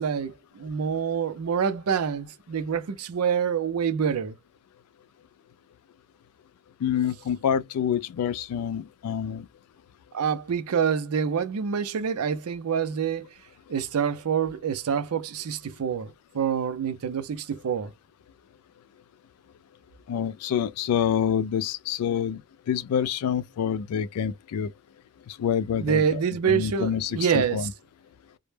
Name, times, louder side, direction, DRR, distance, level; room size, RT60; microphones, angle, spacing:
voice 1, 0.0-4.4 10.1-13.3 13.7-17.9 25.8-27.7, right 7 dB, 70° right, 0.4 m, -26 dB
voice 2, 6.8-9.5 20.1-22.4 22.7-24.7 25.3-27.7, left 8 dB, 75° left, 0.3 m, -27 dB
2.1 x 2.0 x 3.1 m
head